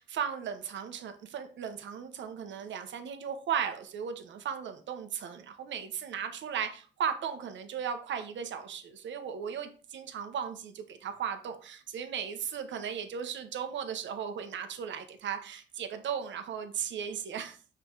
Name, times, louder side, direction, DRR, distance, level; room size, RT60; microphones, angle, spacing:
voice 1, 0.0-17.6, right 7 dB, 70° right, 7 dB, 1.2 m, -36 dB
6.8 x 4.9 x 4.7 m, 0.39 s
cardioid pair, 90°, 20 cm